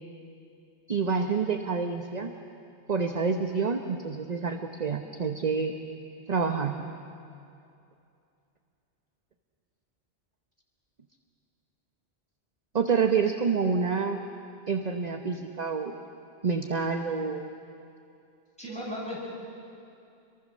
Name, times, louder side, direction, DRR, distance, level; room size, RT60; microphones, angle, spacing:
voice 1, 0.9-2.3 2.9-5.7 6.3-6.8 12.7-14.2 14.7-15.9 16.4-17.4, right 5 dB, 40° right, 4 dB, 1.0 m, -27 dB
voice 2, 18.6-19.2, equal, 5° left, -6 dB, 7.6 m, -35 dB
27.0 x 23.0 x 6.5 m, 2.6 s
omnidirectional pair, 1.1 m